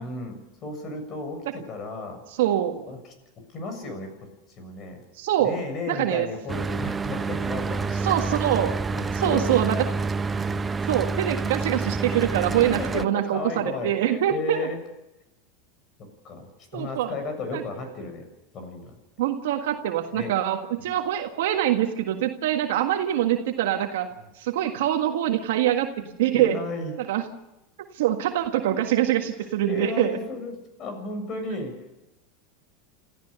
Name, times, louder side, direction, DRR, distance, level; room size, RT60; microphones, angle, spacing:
voice 1, 0.0-2.2 2.8-3.1 3.5-4.1 4.6-5.0 5.4-8.1 8.9-9.8 10.3-10.6 12.7-14.8 16.0-18.2 18.5-18.9 20.1-20.3 20.8-20.9 24.1-24.3 26.0-27.0 28.7-28.9 29.4-32.0, left 3 dB, 40° left, 6 dB, 7.0 m, -34 dB
voice 2, 2.4-2.8 5.2-5.5 5.9-6.3 8.0-8.7 9.2-9.8 10.9-14.6 16.7-17.1 17.5-17.6 19.2-24.1 24.4-25.9 26.2-26.6 27.1-27.2 27.8-30.1, right 12 dB, 80° right, 4 dB, 1.6 m, -24 dB
Mechanical fan, 6.5-13.1, right 4 dB, 20° right, 0.7 m, -28 dB
28.5 x 14.0 x 6.8 m, 0.94 s
supercardioid pair, 120°, 0 cm